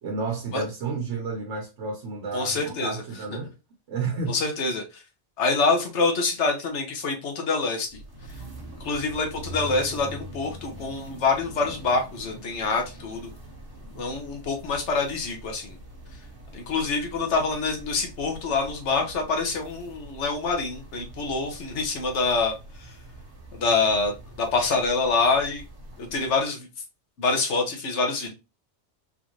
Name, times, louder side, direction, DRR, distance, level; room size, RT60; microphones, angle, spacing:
voice 1, 0.0-3.5 3.9-4.3, right 4 dB, 80° right, 1.1 m, -31 dB
voice 2, 2.3-3.0 4.3-5.0 5.4-8.4 8.8-13.3 14.0-15.8 16.1-16.2 16.5-23.0 23.5-25.6 26.0-26.7 27.2-28.3, left 4 dB, 80° left, 1.2 m, -26 dB
sound 1, 7.9-26.4, right 1 dB, 30° right, 1.3 m, -43 dB
3.7 x 2.5 x 2.9 m
omnidirectional pair, 1.2 m